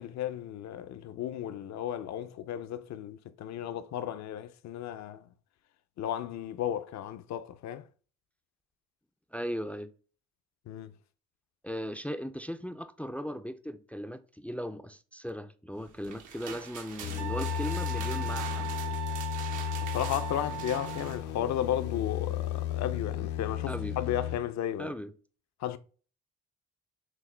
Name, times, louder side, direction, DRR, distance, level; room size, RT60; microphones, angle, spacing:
voice 1, 0.0-5.3 6.0-7.8 10.7-10.9 19.8-24.9 25.6-25.8, left 11 dB, 65° left, 0.5 m, -34 dB
voice 2, 9.3-9.9 11.6-19.0 23.7-24.0 24.8-25.1, equal, 5° left, 0.3 m, -38 dB
sound 1, 15.9-21.2, right 7 dB, 85° right, 1.0 m, -44 dB
sound 2, 17.0-24.4, left 12 dB, 90° left, 0.8 m, -34 dB
Wind instrument woodwind instrument, 17.2-21.3, right 12 dB, 60° right, 0.8 m, -39 dB
6.1 x 2.1 x 3.2 m
cardioid pair, 90°, 30 cm